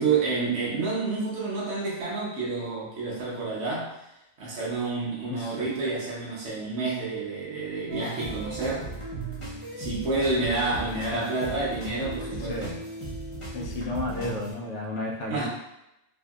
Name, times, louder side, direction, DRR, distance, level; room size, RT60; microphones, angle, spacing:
voice 1, 0.0-4.0 4.4-8.9 9.8-12.8 15.3-15.5, right 3 dB, 70° right, -7 dB, 1.2 m, -29 dB
sound 1, 7.9-14.5, right 2 dB, 30° left, 0.8 m, -37 dB
voice 2, 10.9-11.2 12.4-12.7 13.5-15.5, left 2 dB, 70° left, -1 dB, 0.8 m, -33 dB
3.3 x 2.6 x 2.3 m, 0.88 s
omnidirectional pair, 1.3 m